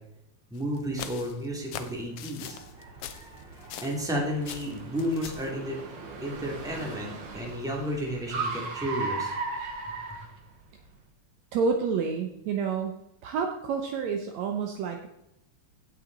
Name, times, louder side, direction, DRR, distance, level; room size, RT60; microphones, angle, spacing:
sound 1, 0.5-4.1 4.4-5.5, left 9 dB, 70° left, 1.5 m, -41 dB
voice 1, 0.5-5.8 6.2-9.3, equal, ahead, -1 dB, 2.1 m, -33 dB
Car, 1.1-10.9, right 4 dB, 50° right, 1.7 m, -38 dB
voice 2, 11.5-13.0 13.2-15.1, right 5 dB, 70° right, 4 dB, 2.1 m, -29 dB
16.0 x 6.2 x 4.0 m, 0.86 s
omnidirectional pair, 3.4 m